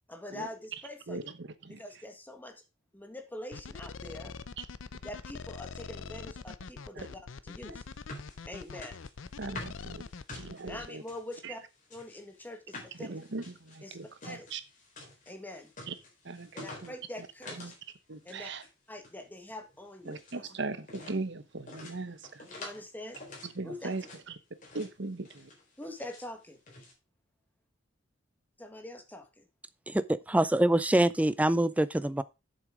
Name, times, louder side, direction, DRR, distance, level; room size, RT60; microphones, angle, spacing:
voice 1, 0.1-1.3 1.7-2.6 2.9-4.3 5.0-7.8 8.5-9.0 10.6-11.6 11.9-13.2 13.8-14.0 14.2-14.5 15.3-15.7 16.5-17.7 18.2-18.5 18.9-20.4 22.5-23.2 23.6-23.9 25.8-26.6 28.6-29.5, left 1 dB, 10° left, 1.6 m, -44 dB
voice 2, 1.1-1.8 6.9-7.1 7.7-7.8 9.4-10.0 10.3-11.0 11.4-11.5 13.0-14.6 15.9-16.0 16.2-17.7 18.1-18.6 20.0-22.5 23.4-24.4 24.7-25.5, right 3 dB, 65° right, 1.0 m, -39 dB
sound 1, 3.5-10.9, left 4 dB, 85° left, 0.6 m, -43 dB
sound 2, 7.6-11.4 11.8-17.8 18.1-18.7 19.0-20.4 20.8-21.2 21.7-22.8 23.1-24.2 24.6-25.0 25.2-26.3 26.7-26.9, left 2 dB, 40° left, 4.1 m, -48 dB
voice 3, 29.9-32.2, right 1 dB, 5° right, 0.4 m, -25 dB
7.9 x 7.3 x 4.9 m
head